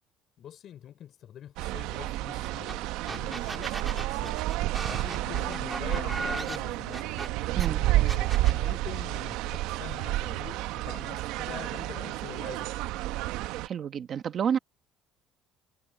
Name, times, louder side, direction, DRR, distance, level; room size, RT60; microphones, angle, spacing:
voice 1, 0.4-4.4 4.8-7.0 7.8-12.9, left 10 dB, 40° left, 5.3 m, -45 dB
sound 1, 1.6-13.7, right 16 dB, 75° right, 0.8 m, -30 dB
sound 2, 2.7-2.8 3.1-7.7 8.1-8.6, right 3 dB, 10° right, 1.6 m, -37 dB
sound 3, 5.3-10.4, left 18 dB, 80° left, 3.4 m, -51 dB
voice 2, 13.6-14.6, right 8 dB, 35° right, 1.0 m, -29 dB
cardioid pair, 170°, 0 cm